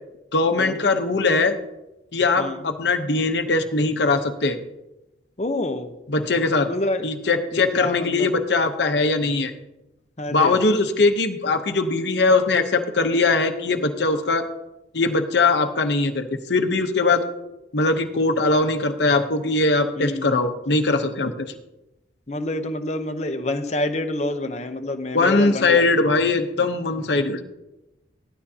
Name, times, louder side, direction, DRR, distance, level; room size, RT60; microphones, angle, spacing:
voice 1, 0.3-1.6 2.1-4.6 6.1-6.7 7.0-9.5 10.3-14.5 14.9-17.3 17.7-21.5 25.1-27.4, left 3 dB, 65° left, 7 dB, 0.9 m, -21 dB
voice 2, 5.4-5.9 6.7-7.0 7.5-8.4 10.2-10.6 20.0-20.3 22.3-25.8, left 1 dB, 35° left, 7 dB, 0.8 m, -27 dB
13.5 x 12.0 x 2.8 m, 0.95 s
head